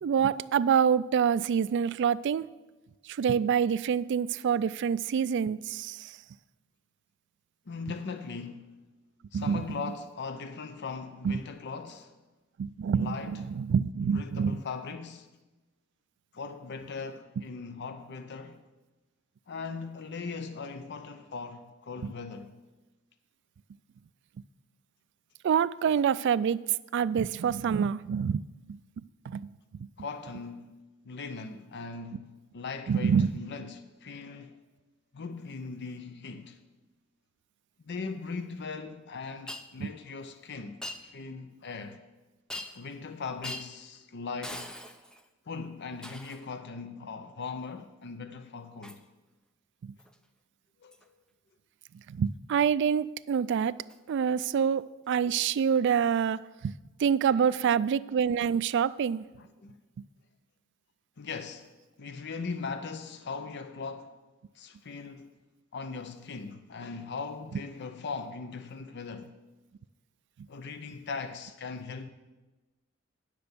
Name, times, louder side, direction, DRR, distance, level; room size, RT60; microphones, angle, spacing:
voice 1, 0.0-2.5 3.1-6.2 9.3-9.6 11.2-11.4 12.6-14.6 25.4-26.6 26.9-28.4 28.7-28.8 29.3-29.5 32.9-33.3 39.8-39.9 49.8-49.9 52.1-53.7 54.1-56.7 57.0-59.2, right 7 dB, 60° right, 0.3 m, -26 dB
voice 2, 7.7-8.7 9.3-12.1 12.9-13.4 14.0-15.3 16.3-18.6 19.5-22.5 30.0-30.7 31.0-34.6 35.1-36.6 37.8-42.0 42.7-44.7 45.5-49.0 50.8-51.2 57.3-57.5 59.4-59.7 61.2-61.7 62.0-64.1 64.5-65.3 65.7-69.3 70.5-72.1, left 4 dB, 55° left, 0.6 m, -39 dB
Shatter, 39.5-39.7 40.8-41.0 42.5-42.9 43.4-43.7 44.4-45.3 46.0-46.5 48.8-49.0 50.0-50.2 50.9-51.1 53.9-54.0 55.1-55.2, left 1 dB, 5° left, 0.5 m, -41 dB
10.0 x 6.7 x 6.8 m
head